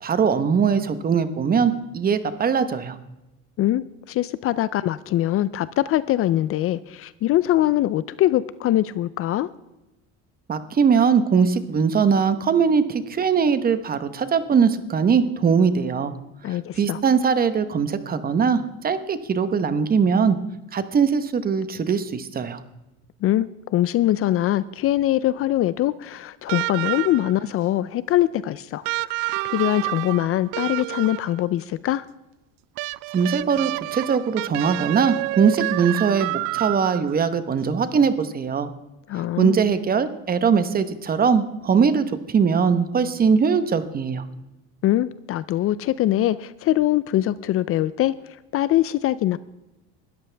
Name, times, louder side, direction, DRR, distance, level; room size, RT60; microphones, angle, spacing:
voice 1, 0.0-3.0 10.5-16.1 16.8-20.4 20.7-22.6 33.1-38.7 39.2-44.2, right 6 dB, 25° right, 12 dB, 1.0 m, -21 dB
voice 2, 3.6-9.5 16.4-17.0 23.2-28.8 29.4-32.0 39.1-39.6 44.8-48.1 48.5-49.4, left 14 dB, 40° left, 17 dB, 0.4 m, -22 dB
sound 1, 26.5-27.4 28.8-31.4 32.8-37.2 38.6-38.7, right 22 dB, 75° right, 0.5 m, -29 dB
20.5 x 13.0 x 3.4 m, 1.0 s
cardioid pair, 140°, 34 cm